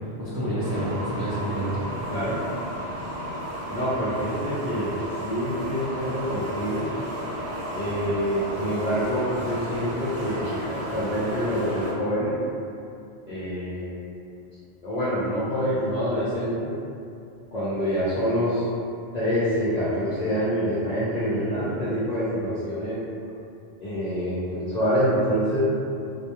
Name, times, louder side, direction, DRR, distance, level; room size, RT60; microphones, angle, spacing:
voice 1, 0.2-1.9 21.1-21.7, right 1 dB, 30° right, -13 dB, 0.4 m, -29 dB
sound 1, 0.6-11.9, equal, 85° right, 0.9 m, -33 dB
voice 2, 2.1-2.4 3.7-6.9 7.7-12.4 13.3-13.9 14.8-16.7 17.5-18.7 19.1-23.0 23.8-25.7, equal, 50° left, -12 dB, 0.6 m, -26 dB
2.2 x 2.1 x 2.8 m, 2.6 s
omnidirectional pair, 1.1 m